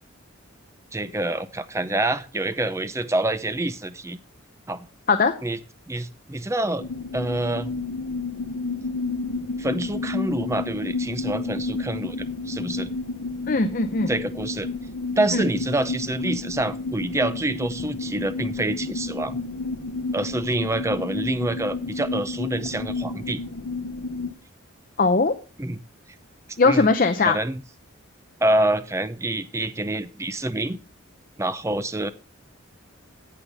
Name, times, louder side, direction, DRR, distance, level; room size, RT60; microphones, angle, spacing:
voice 1, 0.9-4.2 4.7-4.9 5.4-5.6 5.9-6.9 7.1-7.7 9.6-12.9 14.1-14.7 15.2-19.4 20.1-23.4 25.6-25.8 26.6-26.9 27.2-27.6 28.4-30.8 31.4-32.1, right 1 dB, 15° right, 12 dB, 0.5 m, -26 dB
sound 1, 6.8-24.3, left 3 dB, 85° left, 0.6 m, -31 dB
voice 2, 13.5-14.1 15.3-15.4 25.0-25.3 26.6-27.4, left 3 dB, 40° left, 8 dB, 0.6 m, -19 dB
17.0 x 5.7 x 3.4 m, 0.33 s
head